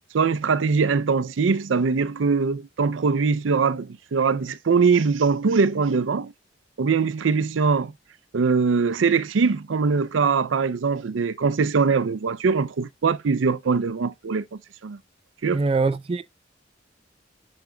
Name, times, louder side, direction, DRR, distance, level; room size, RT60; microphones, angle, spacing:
voice 1, 0.1-6.3 6.8-7.9 8.3-15.0 15.4-15.6, right 5 dB, 85° right, 0.5 m, -22 dB
voice 2, 15.5-16.2, right 3 dB, 30° right, 0.4 m, -23 dB
7.6 x 6.0 x 2.2 m
head